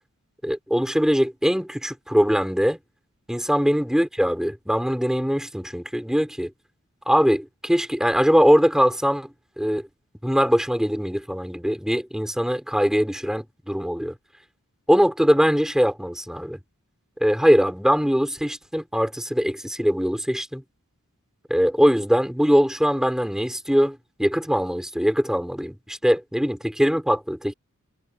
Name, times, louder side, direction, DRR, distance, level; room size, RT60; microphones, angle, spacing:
voice 1, 0.4-2.8 3.3-6.5 7.1-9.9 10.2-14.1 14.9-16.6 17.2-20.6 21.5-27.5, equal, 5° right, 5.0 m, -22 dB
head